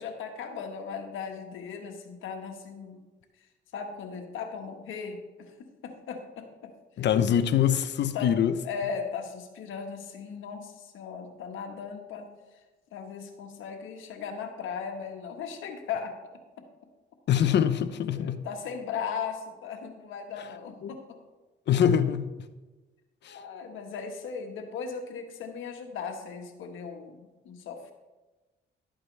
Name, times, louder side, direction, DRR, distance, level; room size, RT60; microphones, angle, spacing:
voice 1, 0.0-3.1 3.7-6.7 7.0-7.1 8.1-8.3 8.6-12.6 12.9-16.2 18.1-21.2 23.3-27.9, left 6 dB, 80° left, 1.5 m, -37 dB
voice 2, 7.0-8.5 17.3-18.4 20.8-20.9 21.7-22.5 23.2-23.4, left 9 dB, 60° left, 0.7 m, -24 dB
12.5 x 8.7 x 3.3 m
cardioid pair, 90°, 20 cm